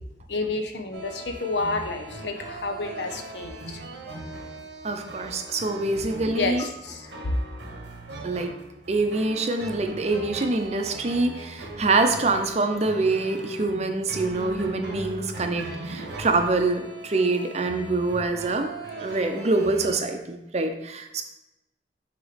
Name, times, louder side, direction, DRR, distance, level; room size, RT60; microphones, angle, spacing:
voice 1, 0.3-3.8 6.2-7.4, left 3 dB, 75° left, 6 dB, 0.8 m, -30 dB
sound 1, 0.9-20.0, right 2 dB, 85° right, 1.3 m, -39 dB
voice 2, 4.8-6.6 8.2-8.5 8.9-18.7 19.0-21.2, right 3 dB, 40° right, 5 dB, 0.6 m, -25 dB
7.1 x 3.0 x 5.1 m, 0.96 s
head